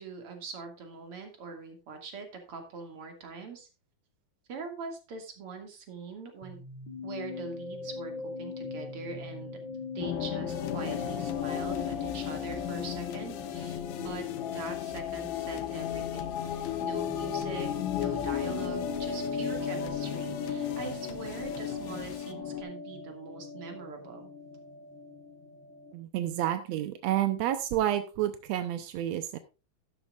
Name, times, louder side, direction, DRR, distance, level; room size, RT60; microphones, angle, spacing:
voice 1, 0.0-3.7 4.5-6.6 7.0-8.1 8.4-9.6 9.9-24.3, right 4 dB, 45° right, 4 dB, 2.9 m, -43 dB
sound 1, 6.4-25.9, left 5 dB, 50° left, 1.5 m, -39 dB
sound 2, 10.0-22.6, left 9 dB, 70° left, 3.2 m, -36 dB
sound 3, 10.5-22.3, left 10 dB, 85° left, 2.7 m, -48 dB
voice 2, 25.9-29.4, right 12 dB, 75° right, 10 dB, 1.6 m, -30 dB
12.0 x 11.5 x 2.5 m, 0.30 s
omnidirectional pair, 4.0 m